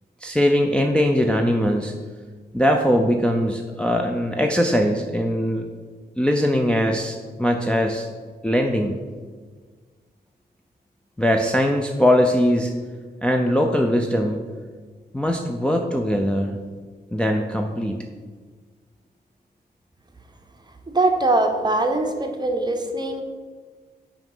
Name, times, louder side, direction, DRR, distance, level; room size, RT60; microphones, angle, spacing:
voice 1, 0.2-2.0 2.5-5.7 6.2-8.1 8.4-9.0 11.2-12.7 13.2-14.5 15.1-16.6 17.1-18.0, equal, 5° left, 2 dB, 0.5 m, -21 dB
voice 2, 20.9-23.2, right 2 dB, 25° right, 4 dB, 0.9 m, -22 dB
5.8 x 5.0 x 5.5 m, 1.5 s
wide cardioid pair, 95°, 17 cm